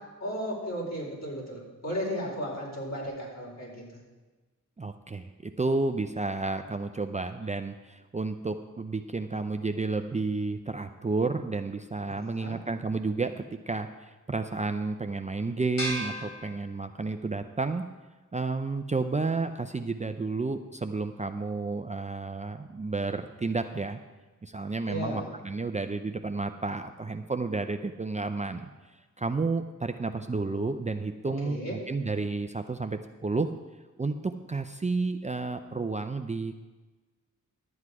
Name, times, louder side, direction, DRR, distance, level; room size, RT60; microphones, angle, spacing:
voice 1, 0.2-3.8 12.1-12.6 24.9-25.2 31.4-31.8, equal, 55° left, -3 dB, 4.4 m, -35 dB
voice 2, 4.8-17.8 18.3-24.0 24.4-28.7 29.2-33.5 34.0-36.5, right 3 dB, 20° right, 7 dB, 0.5 m, -31 dB
sound 1, 15.8-17.3, equal, 85° left, 3.5 m, -36 dB
12.0 x 8.0 x 4.8 m, 1.2 s
cardioid pair, 65°, 33 cm